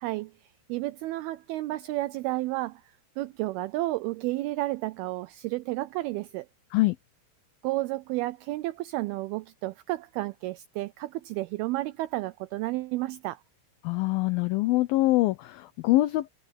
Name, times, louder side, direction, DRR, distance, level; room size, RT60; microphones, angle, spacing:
voice 1, 0.0-2.8 3.2-6.5 7.6-13.4, right 18 dB, 90° right, 2.2 m, -32 dB
voice 2, 13.8-16.3, left 18 dB, 85° left, 2.1 m, -24 dB
omnidirectional pair, 5.0 m